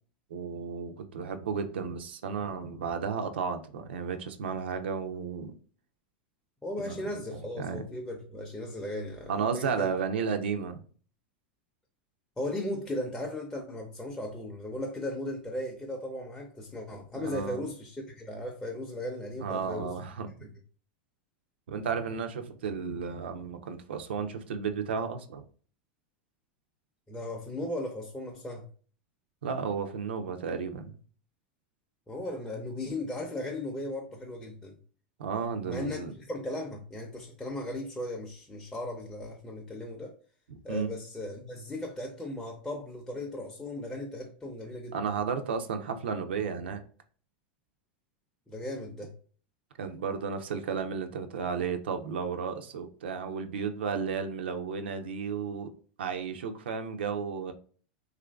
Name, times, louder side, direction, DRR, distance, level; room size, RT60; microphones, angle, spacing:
voice 1, 0.3-5.5 6.8-7.8 9.3-10.8 17.1-17.6 19.4-20.5 21.7-25.4 29.4-30.9 35.2-36.1 40.5-40.9 44.9-46.8 49.8-55.7 56.0-57.5, right 6 dB, 85° right, 0.4 m, -33 dB
voice 2, 6.6-9.9 12.4-19.9 27.1-28.7 32.1-34.7 35.7-40.1 40.6-45.0 48.5-49.1, left 1 dB, 10° left, 0.5 m, -37 dB
3.0 x 2.4 x 2.2 m
hypercardioid pair, 110°, 6 cm